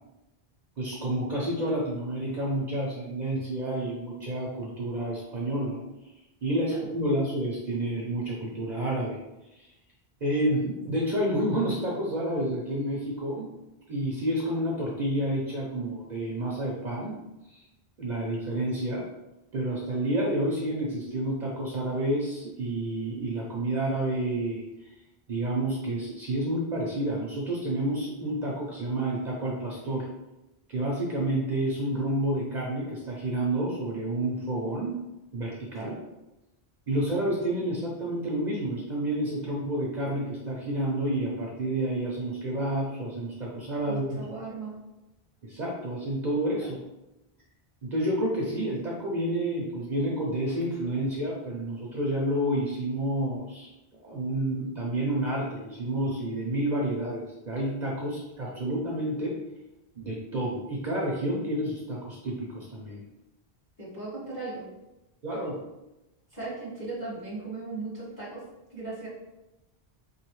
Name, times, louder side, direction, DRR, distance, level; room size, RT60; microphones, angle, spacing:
voice 1, 0.8-5.8 6.4-9.2 9.5-9.7 10.2-13.5 13.9-17.2 17.5-17.6 18.0-19.1 19.5-24.6 25.3-30.1 30.7-35.0 35.3-36.0 36.9-44.3 45.4-46.8 47.8-53.7 54.0-59.4 60.0-63.0 65.2-65.6, right 1 dB, 50° right, -4 dB, 0.8 m, -29 dB
voice 2, 43.8-44.7 63.8-64.6 66.3-68.4 68.7-69.1, right 3 dB, 20° left, -8 dB, 1.3 m, -37 dB
4.2 x 3.1 x 3.1 m, 0.96 s
omnidirectional pair, 1.0 m